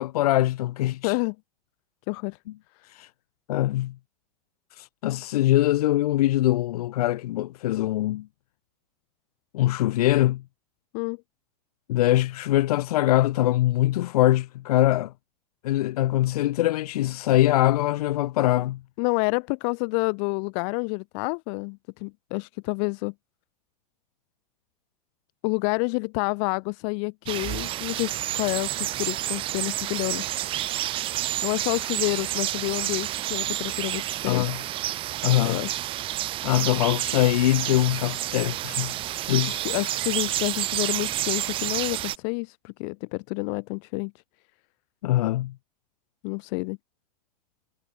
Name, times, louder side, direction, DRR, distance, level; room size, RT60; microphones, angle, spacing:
voice 1, 0.0-1.2 2.9-3.1 3.5-3.9 4.7-8.3 9.5-10.4 11.9-15.1 15.6-18.8 34.3-34.6 35.2-35.6 36.4-38.9 39.3-39.7 45.0-45.5, left 15 dB, 75° left, 1.1 m, -23 dB
voice 2, 1.0-1.4 2.1-2.4 10.9-11.2 19.0-23.1 25.4-28.7 29.0-30.3 31.4-34.5 35.4-35.8 39.6-44.1 46.2-46.8, left 40 dB or more, 50° left, 0.5 m, -29 dB
sound 1, 27.3-42.2, right 14 dB, 30° right, 0.4 m, -29 dB
hypercardioid pair, 115°, 20 cm